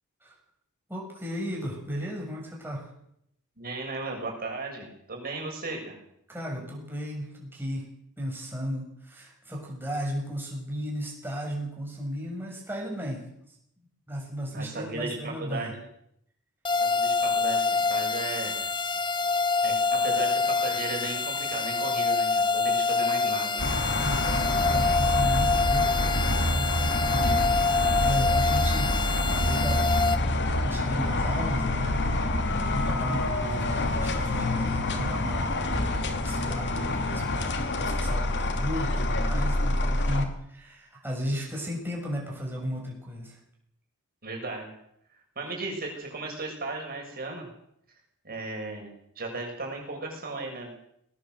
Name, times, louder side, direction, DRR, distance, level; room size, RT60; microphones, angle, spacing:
voice 1, 0.9-2.9 6.3-7.9 8.2-13.2 14.1-15.8 24.0-30.0 30.6-32.1 32.5-35.6 35.8-43.4, equal, 10° right, -2 dB, 6.9 m, -35 dB
voice 2, 3.6-6.0 14.5-15.8 16.8-18.6 19.6-23.9 44.2-44.7 45.4-47.5 48.2-50.7, right 2 dB, 45° right, 1 dB, 6.9 m, -36 dB
sound 1, 16.6-30.2, left 4 dB, 20° left, 1.1 m, -26 dB
sound 2, 23.6-40.2, left 1 dB, 55° left, 2.8 m, -27 dB
19.5 x 19.0 x 7.9 m, 0.74 s
head